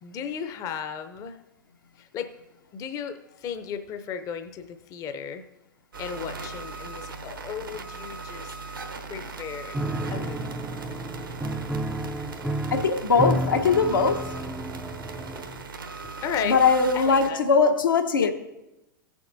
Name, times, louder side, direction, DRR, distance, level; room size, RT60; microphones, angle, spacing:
voice 1, 0.0-1.4 2.0-2.3 2.7-5.5 6.0-8.5 9.1-9.8 10.1-10.6 16.2-16.6 16.9-17.4 18.2-18.3, left 7 dB, 30° left, 0.6 m, -35 dB
sound 1, 5.9-17.3, right 4 dB, 80° right, 1.2 m, -39 dB
Piano, 9.7-15.7, right 1 dB, 5° right, 0.4 m, -31 dB
voice 2, 12.7-14.4 16.4-18.3, left 5 dB, 75° left, 1.0 m, -21 dB
17.0 x 7.1 x 2.6 m
figure-of-eight pair, 95°, 11 cm